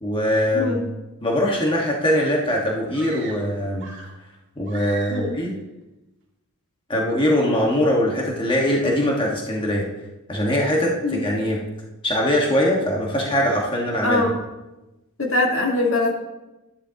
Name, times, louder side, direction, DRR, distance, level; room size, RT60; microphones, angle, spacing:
voice 1, 0.0-0.8 1.2-3.9 4.6-5.5 6.9-9.9 10.3-11.6 12.0-14.2, left 1 dB, 20° left, -2 dB, 1.5 m, -22 dB
sound 1, 2.9-4.3 4.7-5.5, right 3 dB, 55° right, 2.4 m, -40 dB
voice 2, 14.0-14.4 15.2-16.1, left 2 dB, 60° left, 0 dB, 1.8 m, -22 dB
13.0 x 10.0 x 2.9 m, 1.0 s
head